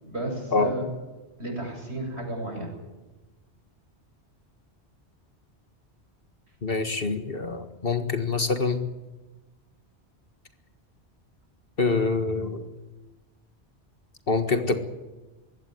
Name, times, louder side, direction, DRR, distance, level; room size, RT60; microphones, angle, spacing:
voice 1, 0.0-0.9 1.4-2.7, right 1 dB, 70° right, 1 dB, 8.4 m, -32 dB
voice 2, 6.6-8.8 11.8-12.7 14.3-14.8, left 4 dB, 55° left, 7 dB, 1.9 m, -25 dB
22.0 x 17.0 x 9.5 m, 1.1 s
omnidirectional pair, 1.1 m